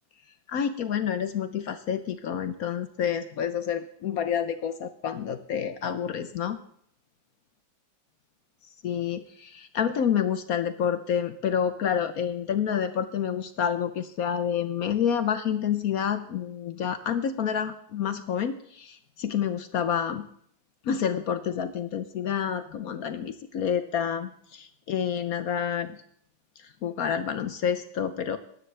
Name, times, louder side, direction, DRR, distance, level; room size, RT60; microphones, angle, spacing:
voice 1, 0.5-6.6 8.8-20.3 20.8-26.0 26.6-28.4, left 8 dB, 65° left, 10 dB, 0.9 m, -28 dB
20.5 x 10.0 x 3.3 m, 0.66 s
omnidirectional pair, 2.1 m